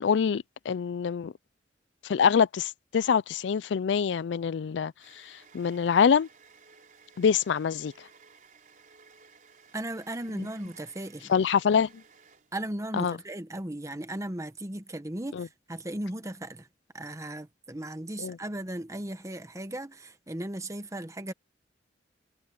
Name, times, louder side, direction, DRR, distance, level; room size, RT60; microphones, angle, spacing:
voice 1, 0.0-1.3 2.0-6.3 7.2-7.9 10.4-10.5 11.3-11.9 13.0-13.2 15.3-15.5 18.2-18.4, left 7 dB, 85° left, 0.4 m, -25 dB
sound 1, 4.2-12.9, right 5 dB, 50° right, 4.1 m, -57 dB
voice 2, 9.7-11.3 12.5-16.7 16.9-21.3, right 1 dB, 20° right, 1.1 m, -36 dB
head